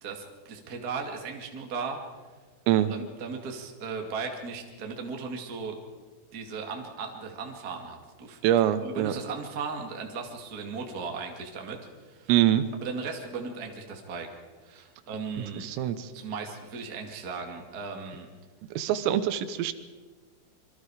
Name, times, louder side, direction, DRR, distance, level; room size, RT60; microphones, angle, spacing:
voice 1, 0.0-2.0 2.9-5.8 6.3-11.8 12.0-12.3 12.8-14.3 14.6-15.7 16.1-18.3, right 5 dB, 45° right, 2 dB, 1.2 m, -37 dB
voice 2, 8.4-9.1 12.3-12.6 15.6-16.1 18.8-19.7, right 12 dB, 85° right, 11 dB, 3.7 m, -24 dB
26.5 x 23.5 x 5.0 m, 1.4 s
omnidirectional pair, 5.9 m